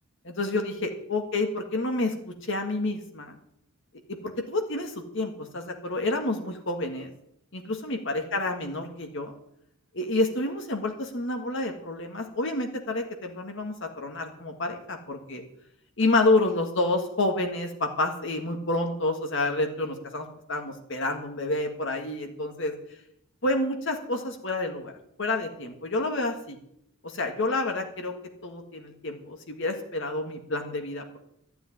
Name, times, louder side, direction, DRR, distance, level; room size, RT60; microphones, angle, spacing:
voice 1, 0.2-3.4 4.2-7.1 7.5-9.3 9.9-15.4 16.0-22.7 23.4-24.9 25.2-26.6 27.0-28.1 28.4-31.0, left 2 dB, 60° left, 4 dB, 1.7 m, -29 dB
12.5 x 7.0 x 9.8 m, 0.74 s
head